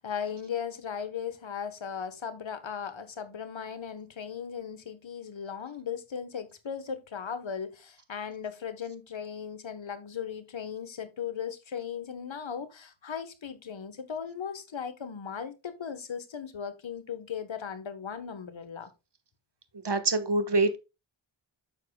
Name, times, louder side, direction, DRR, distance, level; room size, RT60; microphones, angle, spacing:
voice 1, 0.0-18.9, left 7 dB, 70° left, 1.2 m, -37 dB
voice 2, 19.8-20.8, right 3 dB, 60° right, 1.3 m, -25 dB
9.0 x 6.9 x 2.2 m
wide cardioid pair, 65°, 47 cm